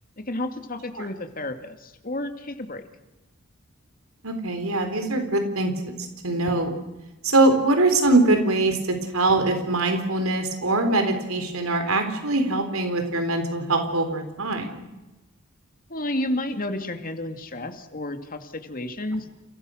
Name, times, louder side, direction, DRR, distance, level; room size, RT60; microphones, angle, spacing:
voice 1, 0.2-2.8 15.9-19.3, left 1 dB, 40° left, 7 dB, 2.5 m, -31 dB
voice 2, 4.2-5.9 6.2-6.7 7.2-14.8, right 2 dB, 85° right, 6 dB, 4.1 m, -22 dB
30.0 x 30.0 x 6.5 m, 1.0 s
head